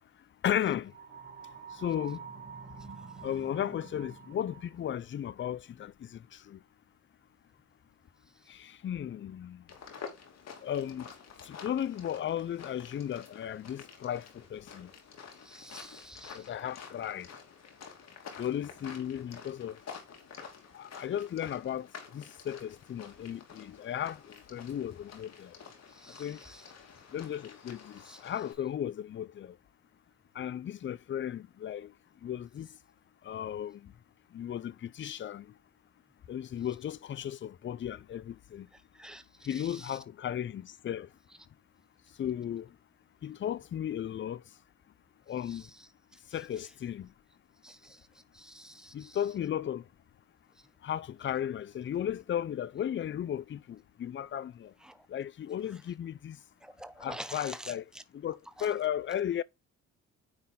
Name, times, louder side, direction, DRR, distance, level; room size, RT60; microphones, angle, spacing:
voice 1, 0.4-0.9 1.8-2.2 3.2-5.9 6.5-6.6 8.5-9.6 10.6-11.1 11.4-14.3 14.5-14.9 16.3-17.3 18.4-19.8 20.7-21.9 22.1-24.2 24.5-25.5 26.2-26.4 27.1-29.5 30.4-31.9 32.2-32.7 33.2-33.9 34.3-35.5 36.3-38.7 39.5-41.1 42.2-42.7 43.2-44.4 45.3-45.6 46.3-47.1 48.9-49.8 50.8-54.7 55.1-56.4 57.0-57.8 58.1-59.4, left 10 dB, 40° left, 0.5 m, -35 dB
sound 1, 0.9-4.8, right 6 dB, 35° right, 1.9 m, -47 dB
sound 2, 9.7-28.5, left 6 dB, 60° left, 2.7 m, -49 dB
voice 2, 15.5-16.4 26.0-26.3 28.1-28.2 39.0-39.2 47.6-48.0 48.4-49.1 56.6-57.7, right 1 dB, ahead, 0.9 m, -46 dB
9.6 x 4.1 x 3.7 m
cardioid pair, 90°, 30 cm